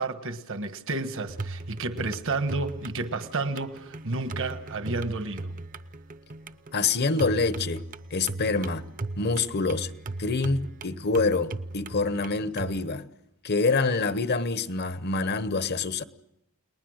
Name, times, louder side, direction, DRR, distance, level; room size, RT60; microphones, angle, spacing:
voice 1, 0.0-5.5, right 3 dB, 60° right, 1.4 m, -31 dB
sound 1, 1.3-12.8, right 2 dB, 40° right, 0.8 m, -38 dB
voice 2, 6.7-7.8 8.1-8.8 9.2-9.9 10.2-13.1 13.4-16.0, left 3 dB, 50° left, 1.0 m, -26 dB
30.0 x 20.0 x 6.4 m
head